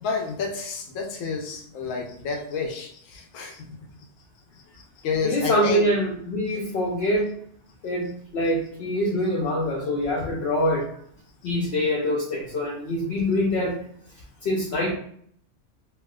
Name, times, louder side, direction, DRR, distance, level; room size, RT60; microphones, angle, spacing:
voice 1, 0.0-3.8 4.7-5.9 6.5-6.7, left 4 dB, 85° left, 3 dB, 1.0 m, -30 dB
voice 2, 5.2-7.3 7.8-10.9 11.4-13.8 14.4-14.9, equal, 65° left, -2 dB, 0.8 m, -24 dB
3.3 x 2.7 x 2.2 m, 0.63 s
omnidirectional pair, 1.3 m